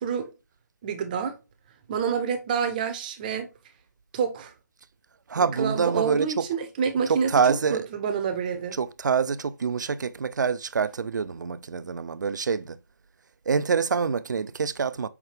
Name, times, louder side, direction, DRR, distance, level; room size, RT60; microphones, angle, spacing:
voice 1, 0.8-1.4 1.9-3.5 4.1-4.5 5.4-8.8, right 7 dB, 25° right, 0.6 m, -28 dB
voice 2, 5.3-6.5 7.1-7.9 8.7-12.8 13.5-15.1, right 5 dB, 75° right, 0.4 m, -26 dB
5.7 x 2.2 x 3.3 m
figure-of-eight pair, 150°, 10 cm